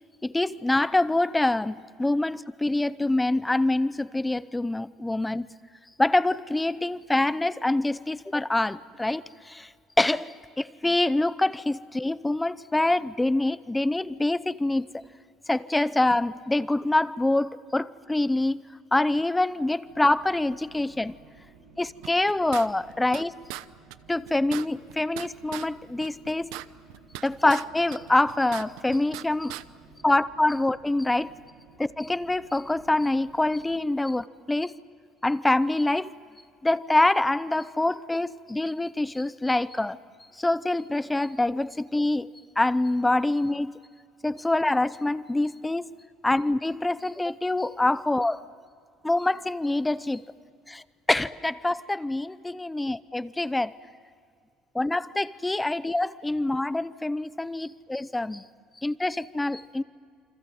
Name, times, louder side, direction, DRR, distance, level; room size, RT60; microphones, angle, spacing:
voice 1, 0.2-5.5 6.0-9.7 10.0-15.0 15.5-18.6 18.9-21.2 21.8-23.3 24.1-26.5 27.2-29.6 30.0-31.3 31.8-34.7 35.2-36.1 36.6-40.0 40.4-42.3 42.6-43.8 44.2-45.9 46.2-48.4 49.0-50.3 50.7-50.8 51.1-53.7 54.7-58.5 58.8-59.8, left 2 dB, 5° left, 16 dB, 0.6 m, -25 dB
sound 1, 19.8-33.8, right 4 dB, 65° right, 6.7 m, -55 dB
sound 2, 22.0-23.2 23.5-23.6 23.9-24.0 24.3-25.7 26.0-27.6 27.9-29.2 29.5-29.6, right 17 dB, 90° right, 0.9 m, -39 dB
29.0 x 25.5 x 7.7 m, 2.1 s
cardioid pair, 160°, 0 cm